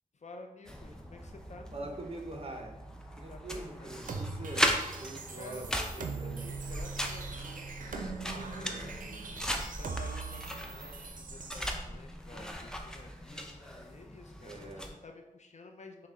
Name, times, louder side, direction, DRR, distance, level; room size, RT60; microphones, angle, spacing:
voice 1, 0.1-2.1 3.3-4.0 5.3-9.1 9.8-16.1, left 3 dB, 60° left, 3 dB, 0.5 m, -51 dB
sound 1, 0.7-14.9, equal, 5° left, 0.5 m, -38 dB
voice 2, 1.7-2.8 3.2-6.4 8.5-9.3 14.4-14.9, right 2 dB, 45° right, 2 dB, 0.7 m, -44 dB
sound 2, 4.0-11.7, right 4 dB, 80° right, 0.5 m, -41 dB
5.6 x 2.2 x 3.7 m, 0.98 s
wide cardioid pair, 75°, 14 cm